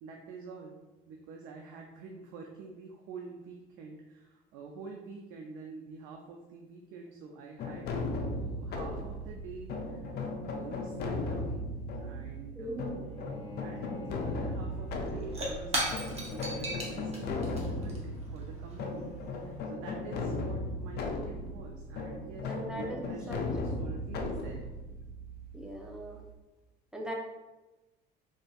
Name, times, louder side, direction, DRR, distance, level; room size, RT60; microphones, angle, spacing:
voice 1, 0.0-0.8 1.1-11.6 12.0-13.3 13.6-24.6, right 4 dB, 90° right, 1 dB, 0.4 m, -47 dB
sound 1, 7.6-26.3, left 2 dB, 55° left, 0.5 m, -37 dB
voice 2, 12.6-13.0 22.4-23.0 23.3-23.8 25.5-26.2 26.9-27.1, right 1 dB, 5° right, -1 dB, 0.5 m, -40 dB
Bowed string instrument, 13.0-18.2, equal, 30° left, 0.8 m, -50 dB
Shatter / Crushing, 14.7-19.6, right 1 dB, 30° right, 0.8 m, -38 dB
3.6 x 2.5 x 2.3 m, 1.1 s
cardioid pair, 110°, 20 cm